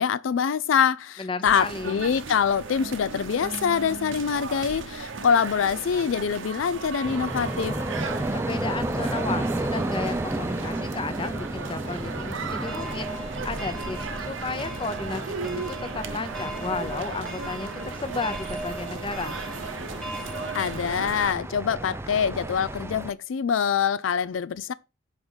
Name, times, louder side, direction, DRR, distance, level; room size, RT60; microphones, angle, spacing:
voice 1, 0.0-7.8 20.5-24.7, left 7 dB, 85° left, 0.4 m, -25 dB
voice 2, 1.2-2.0 8.3-19.4, left 3 dB, 25° left, 0.8 m, -33 dB
sound 1, 1.4-21.3, right 4 dB, 85° right, 0.9 m, -36 dB
sound 2, 7.0-23.1, right 1 dB, 15° right, 0.5 m, -33 dB
sound 3, 12.6-20.9, right 1 dB, 5° left, 1.0 m, -40 dB
5.3 x 5.1 x 6.2 m
head